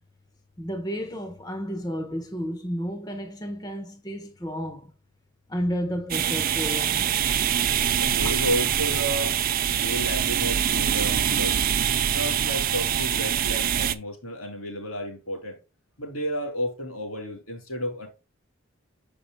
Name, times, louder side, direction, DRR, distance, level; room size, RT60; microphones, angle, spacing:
voice 1, 0.6-4.9 5.5-7.1 8.2-8.3, equal, 20° left, 0.7 m, -32 dB
sound 1, 6.1-13.9, right 9 dB, 40° right, 0.4 m, -24 dB
voice 2, 8.0-9.4 9.6-11.6 12.1-15.6 16.0-18.1, equal, 85° left, 2.7 m, -32 dB
6.8 x 5.3 x 3.4 m
head